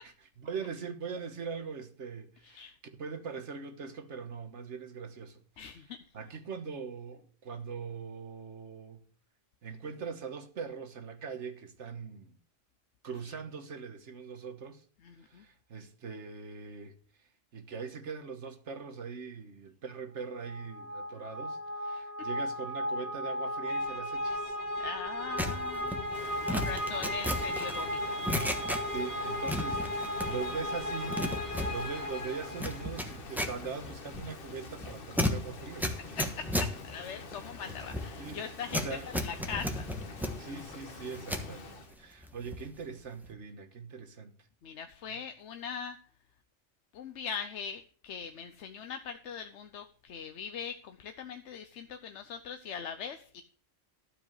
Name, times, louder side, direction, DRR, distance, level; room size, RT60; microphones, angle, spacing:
voice 1, 0.0-5.4 5.7-5.9 6.1-9.0 9.6-12.4 13.0-14.8 15.3-17.0 17.5-24.6 28.9-31.3 31.7-36.2 38.2-38.4 38.7-39.1 40.4-44.3, right 5 dB, 70° right, 1.5 m, -41 dB
voice 2, 2.4-2.8 5.6-6.0 15.0-15.4 21.9-22.0 24.8-28.3 36.2-38.8 39.1-39.8 44.6-46.0 46.9-53.4, left 7 dB, 70° left, 1.0 m, -41 dB
sound 1, 20.3-33.1, left 1 dB, 25° left, 2.5 m, -35 dB
sound 2, 25.4-29.1 29.4-30.6 30.9-41.5 41.9-42.8 43.0-43.3, left 1 dB, ahead, 1.2 m, -35 dB
Rain, 26.1-42.0, left 3 dB, 50° left, 1.3 m, -47 dB
12.5 x 5.0 x 7.7 m
omnidirectional pair, 1.3 m